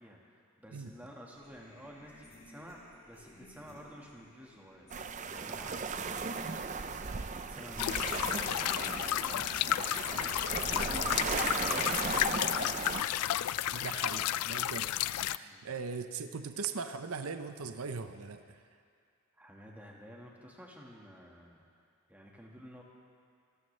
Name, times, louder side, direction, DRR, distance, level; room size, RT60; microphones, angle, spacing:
voice 1, 0.0-4.9 5.2-6.9 7.1-13.0 15.4-15.7 19.3-21.7 22.1-22.8, equal, 5° right, -2 dB, 1.6 m, -52 dB
sound 1, 1.3-10.2, left 1 dB, 30° left, 3.7 m, -56 dB
sound 2, 4.9-13.0, right 4 dB, 35° right, 0.5 m, -36 dB
sound 3, 7.8-15.4, left 12 dB, 90° left, 0.3 m, -32 dB
voice 2, 13.7-14.9 15.2-18.6, right 5 dB, 75° right, 8 dB, 0.6 m, -40 dB
27.5 x 14.0 x 3.3 m, 2.3 s
head